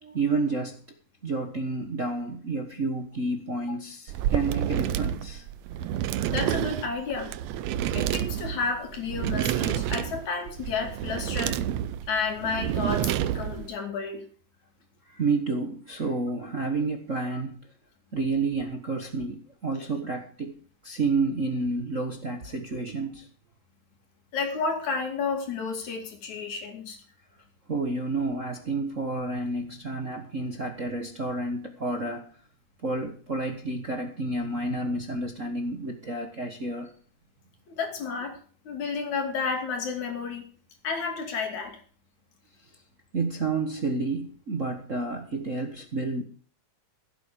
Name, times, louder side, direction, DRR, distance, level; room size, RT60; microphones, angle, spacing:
voice 1, 0.0-0.8 1.2-5.4 15.1-17.6 18.1-20.6 20.8-23.3 27.7-32.4 32.8-37.0 43.1-46.2, right 3 dB, 35° right, 4 dB, 1.3 m, -30 dB
sound 1, 4.1-13.7, right 11 dB, 75° right, 1.8 m, -29 dB
voice 2, 6.3-7.3 7.9-11.6 12.1-14.3 17.3-17.4 24.3-27.0 37.7-38.4 38.7-40.5 40.8-41.8, left 5 dB, 75° left, 4 dB, 4.0 m, -31 dB
16.5 x 8.7 x 5.2 m, 0.43 s
omnidirectional pair, 3.3 m